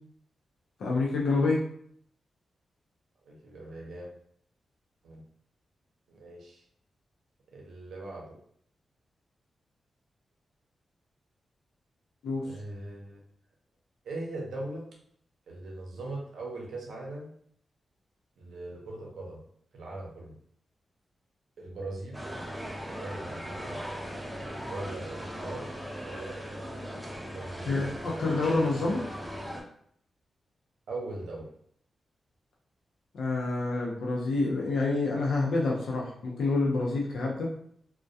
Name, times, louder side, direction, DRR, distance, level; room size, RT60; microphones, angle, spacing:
voice 1, 0.8-1.6 12.2-12.4 27.7-29.0 33.2-37.5, left 3 dB, 85° left, -2 dB, 0.5 m, -27 dB
voice 2, 3.2-4.1 5.0-5.2 6.1-6.6 7.5-8.4 12.4-13.2 14.0-14.8 15.5-17.3 18.4-19.4 19.7-20.4 21.6-22.2 23.0-23.8 24.7-25.7 26.0-26.4 27.3-27.7 30.9-31.5, right 2 dB, 85° right, -2 dB, 0.6 m, -40 dB
sound 1, 22.1-29.6, equal, 5° right, 0.6 m, -38 dB
2.3 x 2.1 x 2.6 m, 0.65 s
cardioid pair, 65°, 0 cm